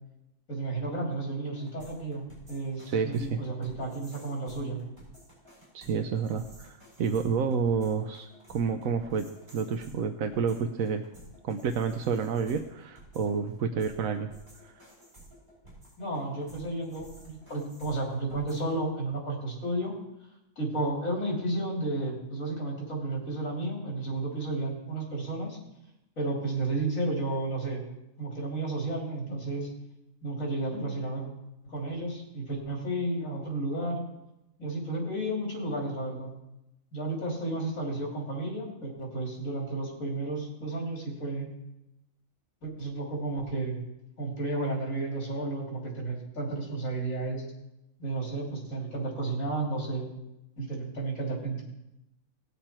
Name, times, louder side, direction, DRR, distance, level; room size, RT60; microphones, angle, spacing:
voice 1, 0.5-4.8 16.0-19.9 20.6-25.6 26.2-27.8 28.2-29.7 30.2-31.3 31.6-34.1 34.6-36.3 36.9-41.5 42.6-43.8 44.2-47.4 48.0-50.1 50.6-51.6, right 2 dB, 75° left, -2 dB, 3.5 m, -32 dB
sound 1, 1.5-18.8, right 1 dB, 40° right, 5.8 m, -53 dB
voice 2, 2.9-3.4 5.7-11.1 11.4-14.3 14.6-14.8, right 6 dB, 80° right, 6 dB, 1.1 m, -29 dB
18.5 x 6.8 x 4.4 m, 0.91 s
omnidirectional pair, 1.4 m